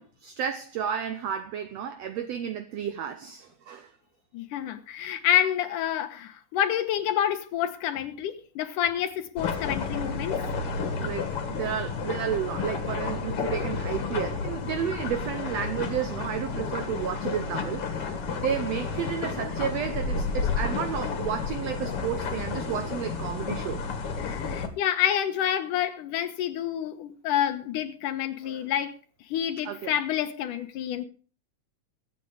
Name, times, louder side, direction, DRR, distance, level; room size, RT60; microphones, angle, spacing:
voice 1, 0.0-3.9 10.8-23.8 28.4-28.6 29.6-29.9, right 9 dB, 70° right, 1.7 m, -32 dB
voice 2, 4.3-10.4 10.7-11.0 24.2-29.0 29.3-31.0, left 10 dB, 80° left, 2.6 m, -28 dB
sound 1, 9.4-24.7, left 5 dB, 50° left, 2.5 m, -31 dB
22.0 x 8.3 x 3.4 m
omnidirectional pair, 3.7 m